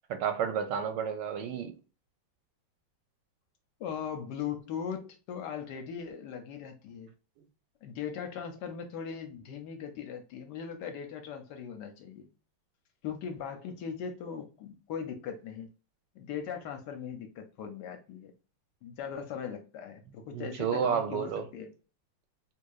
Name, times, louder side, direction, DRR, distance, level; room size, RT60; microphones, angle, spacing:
voice 1, 0.1-1.8 20.3-21.5, right 7 dB, 75° right, 1.1 m, -31 dB
voice 2, 3.8-7.1 7.8-12.3 13.0-15.7 16.1-18.3 18.8-21.7, left 7 dB, 70° left, 1.1 m, -39 dB
4.0 x 2.7 x 2.3 m
omnidirectional pair, 2.1 m